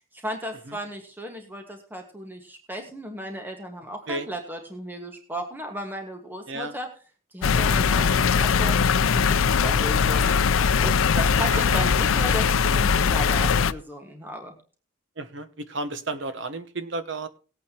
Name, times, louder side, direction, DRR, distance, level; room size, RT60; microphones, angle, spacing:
voice 1, 0.1-6.9 7.3-10.4 10.8-14.6, equal, 10° right, 4 dB, 1.5 m, -35 dB
sound 1, 7.4-13.7, left 6 dB, 85° left, 0.5 m, -21 dB
voice 2, 11.5-11.8 15.2-17.3, right 2 dB, 65° right, 9 dB, 1.0 m, -32 dB
19.0 x 8.7 x 2.9 m, 0.37 s
head